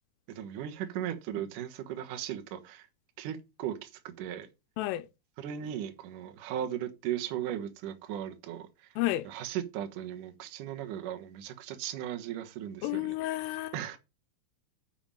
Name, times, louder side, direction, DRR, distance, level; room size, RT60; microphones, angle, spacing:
voice 1, 0.3-2.9 3.2-4.5 5.4-8.9 9.2-13.1 13.5-14.0, right 10 dB, 70° right, 2.0 m, -37 dB
voice 2, 9.0-9.3 12.8-14.0, left 16 dB, 85° left, 3.3 m, -31 dB
7.2 x 5.9 x 7.6 m
omnidirectional pair, 5.6 m